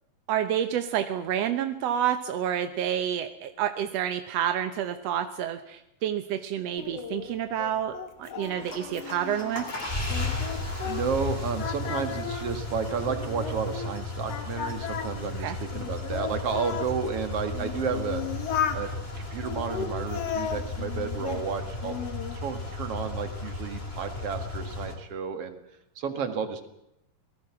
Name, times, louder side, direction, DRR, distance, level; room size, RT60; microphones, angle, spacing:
voice 1, 0.3-9.7 15.4-15.6, right 10 dB, 70° right, 9 dB, 1.6 m, -29 dB
Singing, 6.8-11.3 11.6-13.9 14.3-16.9 17.5-18.8 19.4-21.4 21.8-22.4, left 8 dB, 50° left, 2.3 m, -35 dB
sound 1, 8.5-24.9, left 2 dB, 15° left, 3.6 m, -35 dB
voice 2, 10.8-18.2 18.7-18.9 19.2-21.9 22.3-25.6 26.0-26.7, right 6 dB, 50° right, 8 dB, 2.5 m, -32 dB
26.0 x 18.5 x 6.0 m, 0.83 s
omnidirectional pair, 4.1 m